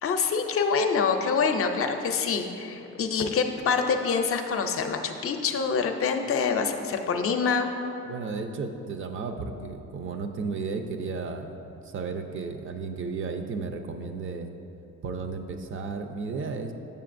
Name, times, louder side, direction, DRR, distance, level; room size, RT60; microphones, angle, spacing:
voice 1, 0.0-7.7, left 5 dB, 50° left, 5 dB, 0.5 m, -26 dB
voice 2, 8.0-11.5 11.8-14.5 15.0-16.7, right 4 dB, 45° right, 6 dB, 0.5 m, -33 dB
6.8 x 6.7 x 2.5 m, 2.8 s
cardioid pair, 90°, 30 cm